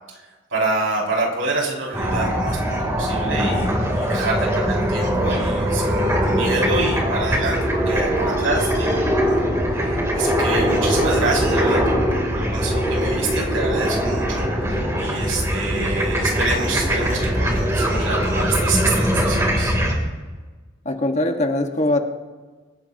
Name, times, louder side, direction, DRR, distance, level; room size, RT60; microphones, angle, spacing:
voice 1, 0.5-19.8, right 3 dB, 85° right, -3 dB, 5.7 m, -27 dB
sound 1, 1.9-19.9, equal, 15° right, 3.0 m, -21 dB
voice 2, 20.8-22.0, left 2 dB, 35° left, 4 dB, 1.4 m, -21 dB
25.5 x 16.5 x 2.8 m, 1.3 s
head